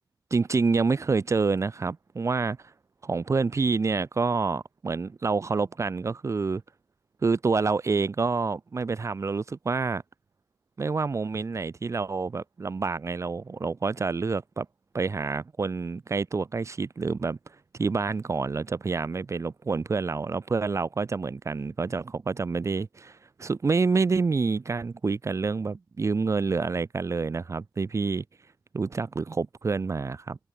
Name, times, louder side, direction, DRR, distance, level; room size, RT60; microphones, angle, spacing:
voice 1, 0.3-2.6 3.1-6.6 7.2-10.0 10.8-14.7 14.9-28.2 28.7-30.4, right 4 dB, 40° right, 3.3 m, -27 dB
open air
wide cardioid pair, 110°, 8 cm